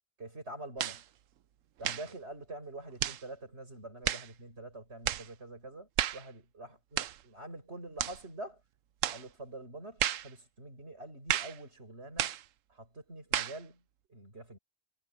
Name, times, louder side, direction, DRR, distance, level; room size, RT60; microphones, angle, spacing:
voice 1, 0.2-1.1 1.8-8.6 9.1-12.4 12.7-13.8 14.1-14.6, right 2 dB, 60° right, 6.4 m, -46 dB
sound 1, 0.8-1.0 1.8-2.1 3.0-3.2 4.0-4.3 5.0-5.3 6.0-6.3 7.0-7.2 8.0-8.2 9.0-9.2 10.0-10.3 11.3-11.6 12.2-12.4 13.3-13.6, right 11 dB, 85° right, 1.1 m, -32 dB
omnidirectional pair, 1.3 m